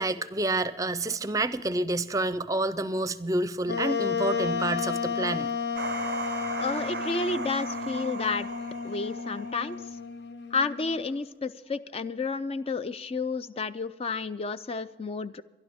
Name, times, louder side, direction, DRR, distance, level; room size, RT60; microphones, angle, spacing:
voice 1, 0.0-5.5, right 2 dB, 20° right, 14 dB, 0.5 m, -28 dB
Wind instrument woodwind instrument, 3.7-11.1, left 6 dB, 75° left, 1.1 m, -32 dB
sound 1, 5.8-10.0, right 6 dB, 65° right, 0.4 m, -38 dB
voice 2, 6.6-8.5 8.8-9.8 10.5-15.4, left 4 dB, 35° left, 13 dB, 0.4 m, -31 dB
22.5 x 12.0 x 3.6 m, 1.1 s
head